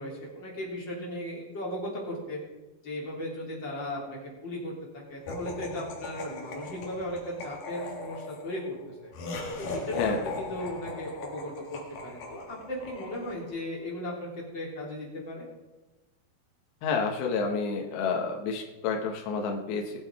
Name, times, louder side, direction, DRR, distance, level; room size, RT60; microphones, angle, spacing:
voice 1, 0.0-2.4 2.8-8.7 9.0-9.1 9.6-15.4, left 1 dB, 25° left, -3 dB, 3.4 m, -36 dB
Laughter, 5.3-13.6, left 2 dB, 60° left, 2.9 m, -39 dB
voice 2, 16.8-20.0, left 5 dB, 75° left, 1 dB, 3.2 m, -29 dB
20.0 x 7.7 x 4.7 m, 1.1 s
omnidirectional pair, 5.2 m